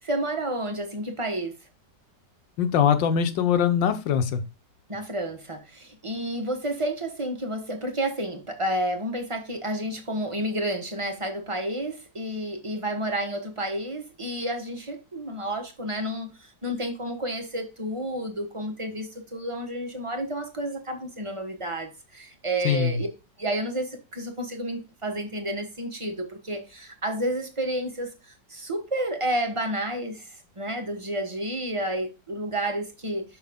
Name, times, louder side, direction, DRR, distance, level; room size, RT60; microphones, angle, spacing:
voice 1, 0.0-1.6 4.9-23.1 23.4-28.1 28.5-30.2 30.6-33.2, right 1 dB, 20° right, 1.0 m, -30 dB
voice 2, 2.6-4.4 22.6-23.0, left 8 dB, 85° left, 1.6 m, -22 dB
6.5 x 6.0 x 3.6 m
omnidirectional pair, 1.9 m